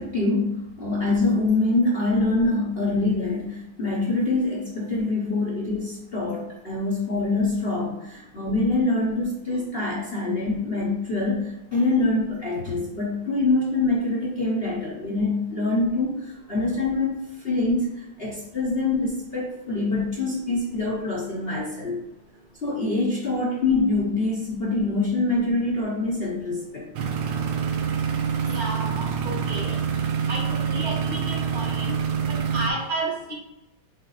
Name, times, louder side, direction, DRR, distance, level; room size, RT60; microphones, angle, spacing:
voice 1, 0.0-17.2 17.4-22.0 22.6-26.9 30.2-30.3, left 2 dB, 40° left, -4 dB, 1.0 m, -25 dB
sound 1, 27.0-32.7, right 7 dB, 85° right, 1.4 m, -26 dB
voice 2, 28.5-29.8 30.3-31.9 32.3-33.3, right 2 dB, 50° right, -2 dB, 2.0 m, -31 dB
5.6 x 4.4 x 4.0 m, 0.92 s
omnidirectional pair, 2.1 m